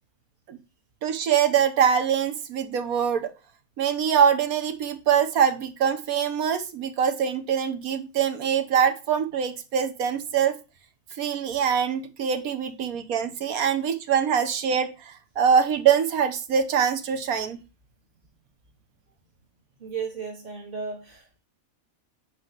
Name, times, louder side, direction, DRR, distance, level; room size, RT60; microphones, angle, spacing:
voice 1, 1.0-3.3 3.8-10.6 11.2-17.6, right 7 dB, 80° right, 1.4 m, -24 dB
voice 2, 19.8-21.4, right 5 dB, 35° right, 1.2 m, -35 dB
8.7 x 3.3 x 5.8 m
omnidirectional pair, 1.5 m